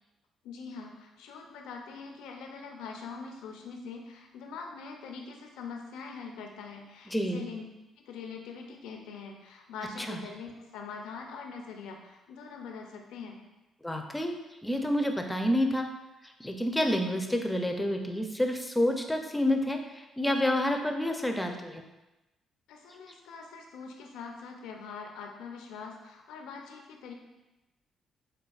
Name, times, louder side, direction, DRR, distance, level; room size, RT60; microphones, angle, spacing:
voice 1, 0.4-7.6 8.0-13.4 22.7-27.1, left 5 dB, 85° left, 2 dB, 0.4 m, -43 dB
voice 2, 7.1-7.4 10.0-10.2 13.8-14.3 14.6-15.9 16.4-21.8, left 1 dB, 10° left, 4 dB, 0.4 m, -28 dB
4.4 x 2.3 x 2.3 m, 1.0 s
supercardioid pair, 70°, 0 cm